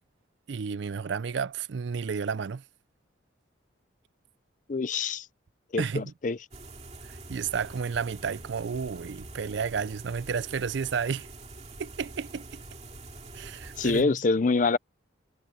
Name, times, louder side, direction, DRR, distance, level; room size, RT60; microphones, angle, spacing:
voice 1, 0.5-2.6 5.8-6.1 7.0-11.3 11.8-12.6 13.3-14.2, right 6 dB, 70° right, 0.4 m, -32 dB
voice 2, 4.7-5.3 5.7-6.4 13.8-14.8, left 4 dB, 40° left, 0.5 m, -25 dB
sound 1, 6.5-14.0, right 2 dB, 35° right, 2.5 m, -45 dB
head